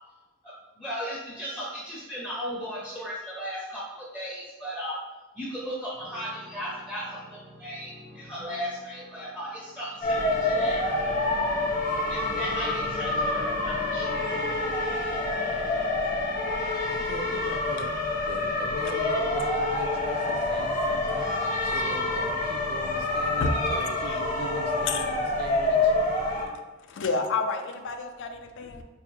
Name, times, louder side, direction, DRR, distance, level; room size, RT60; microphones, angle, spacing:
voice 1, 0.4-5.0 5.4-10.8 12.1-14.3, equal, 5° left, -6 dB, 0.5 m, -36 dB
sound 1, 5.9-25.1, right 1 dB, 80° right, 1.0 m, -49 dB
sound 2, 10.0-26.4, left 2 dB, 40° left, 0.8 m, -27 dB
voice 2, 16.9-17.9 18.3-25.9, right 2 dB, 50° right, 3 dB, 0.5 m, -40 dB
voice 3, 23.4-24.2 24.9-25.0 26.9-28.8, left 3 dB, 60° left, 6 dB, 0.4 m, -30 dB
4.6 x 2.1 x 3.0 m, 1.1 s
head